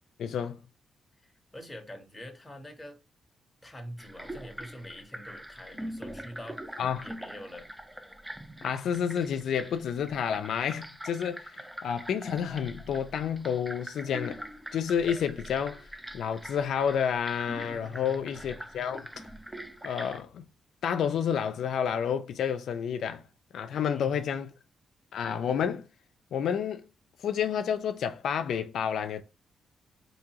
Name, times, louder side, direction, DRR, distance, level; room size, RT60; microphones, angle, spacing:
voice 1, 0.2-0.6 6.8-7.1 8.6-11.5 11.8-14.4 14.7-15.8 16.1-19.1 19.8-20.5 20.8-23.2 23.5-24.5 25.1-25.9 26.3-26.8 27.2-29.2, left 8 dB, 75° left, 0.3 m, -30 dB
voice 2, 1.2-3.0 3.6-6.6 7.0-7.7 17.6-18.2 23.7-24.2, equal, 10° left, 0.8 m, -45 dB
sound 1, 4.0-20.2, equal, 5° right, 0.4 m, -43 dB
3.6 x 2.7 x 2.8 m
cardioid pair, 110°, 0 cm